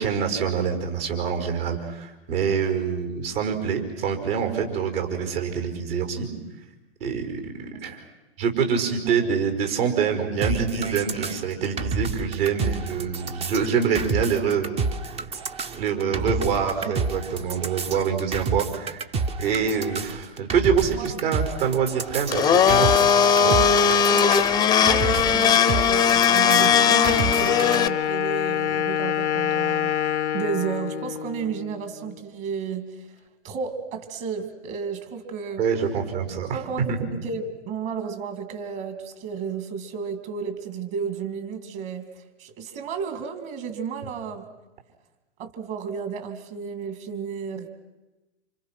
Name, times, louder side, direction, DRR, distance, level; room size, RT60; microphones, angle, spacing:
voice 1, 0.0-6.3 7.0-8.0 8.4-14.8 15.8-19.0 19.4-22.9 23.4-23.6 35.6-36.6 36.9-37.1, right 6 dB, 60° right, 5 dB, 5.2 m, -25 dB
sound 1, 10.4-27.8, right 4 dB, 20° right, 0.9 m, -30 dB
Domestic sounds home sounds, 22.3-27.9, left 7 dB, 10° left, 0.8 m, -18 dB
voice 2, 24.5-30.0 30.3-33.1 33.4-35.6 36.5-44.4 45.4-47.7, right 6 dB, 35° right, 8 dB, 2.8 m, -32 dB
Wind instrument woodwind instrument, 26.5-32.3, left 10 dB, 85° left, 0.8 m, -27 dB
28.5 x 27.0 x 6.0 m, 1.1 s
hypercardioid pair, 125°, 34 cm